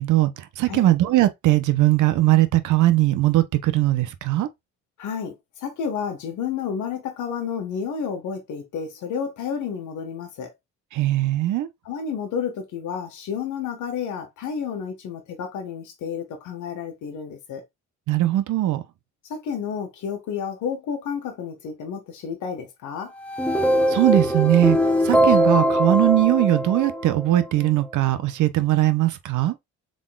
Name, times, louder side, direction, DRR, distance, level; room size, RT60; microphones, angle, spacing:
voice 1, 0.0-4.5 10.9-11.7 18.1-18.8 23.9-24.8 25.0-29.5, right 15 dB, 80° right, 0.8 m, -20 dB
voice 2, 5.0-10.5 11.8-17.6 19.3-23.1, left 7 dB, 80° left, 1.3 m, -31 dB
sound 1, 23.2-27.4, equal, 5° left, 0.9 m, -21 dB
3.8 x 3.7 x 2.3 m
cardioid pair, 90°, 30 cm